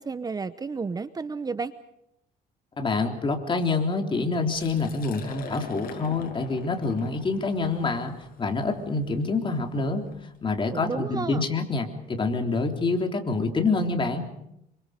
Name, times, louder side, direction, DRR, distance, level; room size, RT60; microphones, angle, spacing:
voice 1, 0.0-1.7 10.7-11.5, right 4 dB, 20° right, 13 dB, 0.8 m, -32 dB
voice 2, 2.8-10.0 10.4-14.3, left 3 dB, 30° left, 3 dB, 3.7 m, -26 dB
Liquid, 4.5-10.2, left 5 dB, 60° left, 6.8 m, -43 dB
28.0 x 25.0 x 5.2 m, 0.81 s
cardioid pair, 110°, 17 cm